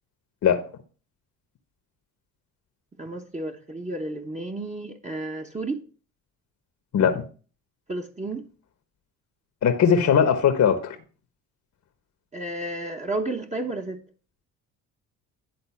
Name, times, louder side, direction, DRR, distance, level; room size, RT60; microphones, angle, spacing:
voice 1, 3.0-5.8 7.9-8.4 12.3-14.0, right 2 dB, 20° right, 1.1 m, -32 dB
voice 2, 9.6-10.9, left 7 dB, 50° left, 1.1 m, -19 dB
10.5 x 3.9 x 5.7 m
supercardioid pair, 75°, 36 cm